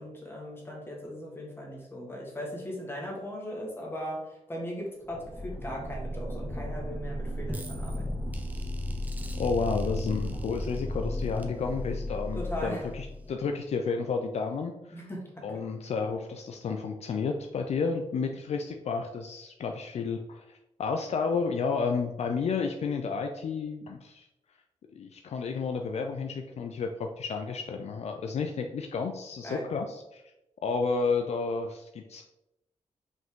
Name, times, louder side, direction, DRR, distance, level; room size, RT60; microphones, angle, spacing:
voice 1, 0.0-8.1 12.4-12.9 14.9-15.5 29.4-29.7, equal, 20° left, -3 dB, 1.9 m, -38 dB
sound 1, 5.0-13.5, left 1 dB, 15° right, 0.8 m, -35 dB
voice 2, 9.4-15.0 15.4-24.3 24.9-30.2 30.6-32.2, left 5 dB, 60° left, 4 dB, 0.5 m, -31 dB
5.6 x 5.4 x 3.7 m, 0.91 s
wide cardioid pair, 145°, 12 cm